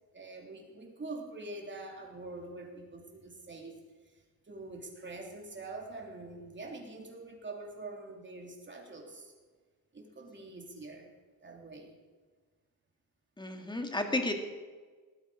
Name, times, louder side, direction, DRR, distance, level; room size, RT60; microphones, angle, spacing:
voice 1, 0.1-3.8 4.0-9.3 9.9-11.1 11.4-12.0, right 2 dB, 30° right, 1 dB, 3.3 m, -45 dB
voice 2, 13.4-14.3, left 2 dB, 10° left, 4 dB, 2.2 m, -32 dB
19.0 x 13.5 x 5.1 m, 1.4 s
cardioid pair, 115°, 36 cm